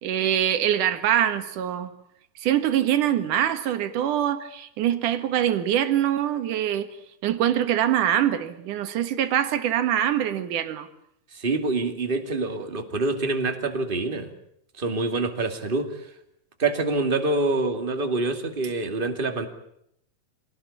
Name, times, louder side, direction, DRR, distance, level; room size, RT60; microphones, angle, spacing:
voice 1, 0.0-1.9 2.4-6.9 7.2-10.9, right 10 dB, 70° right, 3.1 m, -24 dB
voice 2, 11.3-14.3 14.8-15.9 16.6-19.5, right 3 dB, 20° right, 2.2 m, -26 dB
26.0 x 19.0 x 8.6 m
omnidirectional pair, 3.8 m